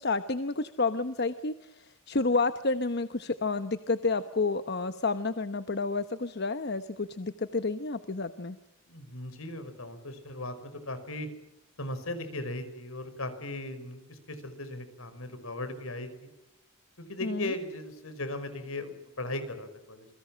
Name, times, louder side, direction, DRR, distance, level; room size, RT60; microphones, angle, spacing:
voice 1, 0.0-8.6 17.2-17.5, left 3 dB, 50° left, 10 dB, 1.0 m, -30 dB
voice 2, 8.9-11.3 11.8-16.3 17.0-20.1, left 1 dB, 70° left, 10 dB, 5.4 m, -38 dB
28.0 x 22.5 x 7.4 m, 0.92 s
head